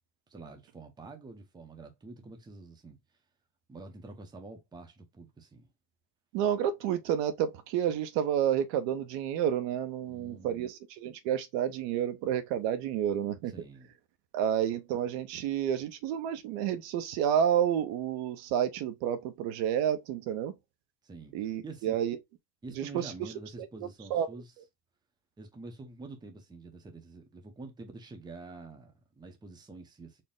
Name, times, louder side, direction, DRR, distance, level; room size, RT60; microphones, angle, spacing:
voice 1, 0.3-3.0 3.7-5.7 10.1-10.7 13.5-13.9 21.0-22.1 22.6-24.5 25.4-30.2, right 3 dB, 10° right, 0.6 m, -47 dB
voice 2, 6.3-13.5 14.3-20.5 21.3-22.2 22.8-23.3 23.6-23.7 24.1-24.3, right 9 dB, 75° right, 0.7 m, -30 dB
4.3 x 2.1 x 3.6 m
cardioid pair, 145°, 43 cm